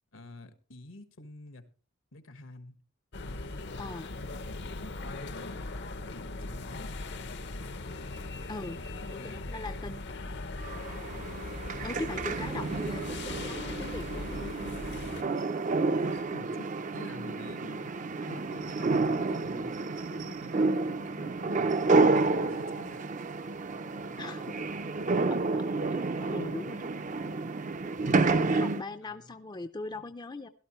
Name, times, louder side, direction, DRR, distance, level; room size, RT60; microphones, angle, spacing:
voice 1, 0.1-1.7 2.1-2.8 3.3-5.7 6.0-7.0 9.0-9.5 11.7-11.9 15.8-17.9 18.3-19.8 20.1-21.7 22.1-23.1 28.9-29.3 29.9-30.1, left 2 dB, 75° left, 1.5 m, -49 dB
sound 1, 3.1-15.2, left 2 dB, 55° left, 0.8 m, -39 dB
voice 2, 3.8-4.1 8.5-8.8 9.1-10.0 11.8-14.4 24.2-24.6 25.5-26.0 26.3-26.9 28.0-30.5, left 2 dB, 20° left, 0.5 m, -40 dB
sound 2, 10.6-28.8, right 3 dB, 40° right, 0.6 m, -30 dB
17.0 x 12.5 x 3.1 m
head